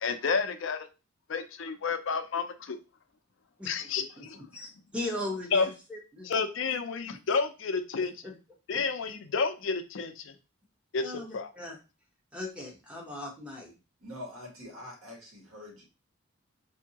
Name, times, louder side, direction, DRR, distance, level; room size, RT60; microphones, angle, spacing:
voice 1, 0.0-0.9 1.3-2.8 3.6-4.4 5.5-5.7 6.2-8.1 8.7-10.4 10.9-11.5, left 5 dB, 60° left, 8 dB, 0.5 m, -30 dB
voice 2, 4.5-6.3 8.7-8.8 11.0-11.8 12.3-13.7, left 1 dB, 5° right, -2 dB, 1.0 m, -38 dB
voice 3, 14.0-15.8, left 1 dB, 75° right, -1 dB, 1.6 m, -44 dB
4.4 x 2.7 x 2.8 m, 0.30 s
head